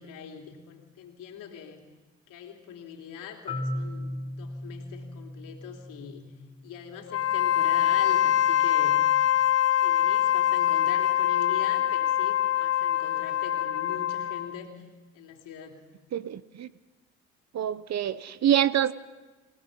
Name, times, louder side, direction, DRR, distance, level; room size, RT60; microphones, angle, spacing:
voice 1, 0.0-1.8 2.3-6.2 6.6-9.1 9.8-14.9 15.1-15.8, left 8 dB, 80° left, 2 dB, 3.1 m, -42 dB
Marimba xylophone, 3.5-7.3, left 1 dB, 20° left, 3.7 m, -37 dB
Wind instrument woodwind instrument, 7.1-14.5, left 11 dB, 50° left, 1.4 m, -24 dB
voice 2, 16.1-16.7 17.5-18.9, right 10 dB, 55° right, 16 dB, 0.9 m, -26 dB
29.5 x 17.0 x 5.5 m, 1.2 s
supercardioid pair, 70°, 32 cm